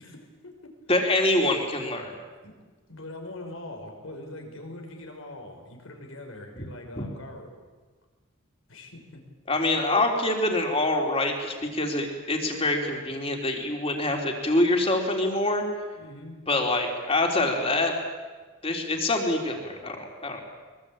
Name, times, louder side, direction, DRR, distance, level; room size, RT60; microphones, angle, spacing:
voice 1, 0.0-0.7 2.4-2.6 2.9-7.6 8.7-9.2 16.0-16.4, left 1 dB, 80° left, 3 dB, 5.5 m, -42 dB
voice 2, 0.9-2.1 6.6-6.7 7.0-7.1 9.5-15.6 16.5-17.9 18.6-20.4, left 2 dB, 25° left, 2 dB, 3.7 m, -25 dB
23.5 x 23.0 x 8.8 m, 1.4 s
head